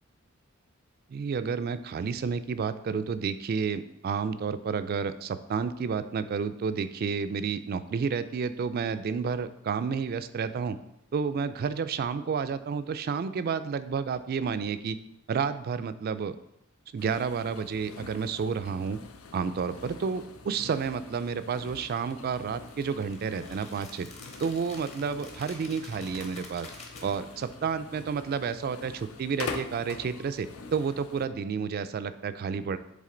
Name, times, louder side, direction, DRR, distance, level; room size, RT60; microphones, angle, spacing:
voice 1, 1.1-10.8 11.1-15.0 15.3-16.4 16.9-19.0 19.3-24.1 24.4-26.7 27.0-32.8, right 6 dB, 45° right, 12 dB, 0.3 m, -30 dB
sound 1, 17.0-31.3, left 4 dB, 85° left, 0.5 m, -44 dB
sound 2, 22.1-27.5, left 3 dB, 30° left, 1.0 m, -49 dB
7.4 x 3.6 x 3.8 m, 0.79 s
head